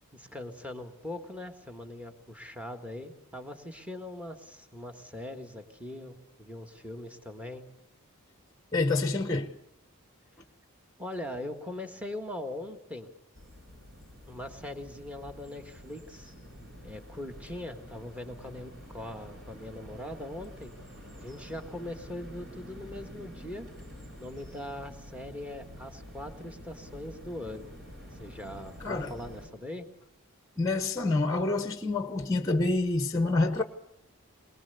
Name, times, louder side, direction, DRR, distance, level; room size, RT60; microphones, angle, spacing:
voice 1, 0.1-7.7 11.0-13.1 14.3-16.3 16.6-20.7 21.2-23.7 24.2-27.8 28.2-29.9, left 1 dB, 5° right, 1.5 m, -41 dB
voice 2, 8.7-9.5 28.8-29.1 30.6-33.6, left 2 dB, 15° left, 0.9 m, -27 dB
sound 1, 13.4-29.5, equal, 55° right, 6.1 m, -48 dB
22.5 x 20.5 x 6.9 m
head